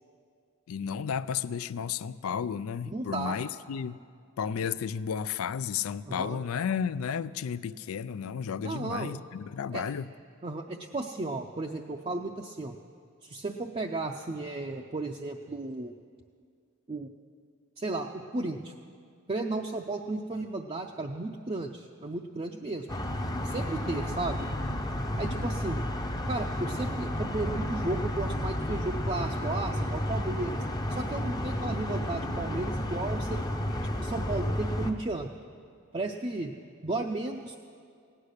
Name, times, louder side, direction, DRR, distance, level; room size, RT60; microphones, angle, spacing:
voice 1, 0.7-4.0 4.4-10.1, left 7 dB, 85° left, 0.4 m, -33 dB
voice 2, 2.9-3.4 6.1-6.4 8.6-9.1 9.7-9.9 10.4-12.8 13.2-15.9 16.9-17.1 17.8-18.7 19.3-22.9 23.4-24.5 25.2-25.8 26.3-30.6 30.9-33.4 34.0-35.3 35.9-36.5 36.8-37.6, right 2 dB, 30° right, 0.5 m, -34 dB
sound 1, 22.9-34.9, left 1 dB, 20° left, 0.6 m, -32 dB
17.0 x 9.9 x 6.6 m
head